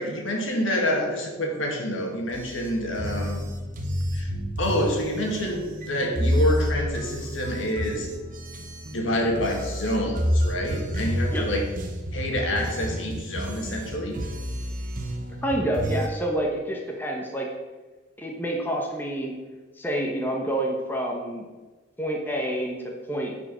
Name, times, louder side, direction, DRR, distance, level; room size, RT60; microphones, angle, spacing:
voice 1, 0.0-3.5 4.1-4.3 4.6-8.1 8.9-11.7 12.1-14.2, equal, 70° left, 1 dB, 1.9 m, -27 dB
sound 1, 2.3-16.1, equal, 40° right, 1.1 m, -29 dB
voice 2, 15.4-17.5 18.2-19.3 19.8-21.4 22.0-23.3, right 1 dB, 10° left, 0 dB, 1.1 m, -28 dB
9.5 x 4.9 x 6.3 m, 1.3 s
head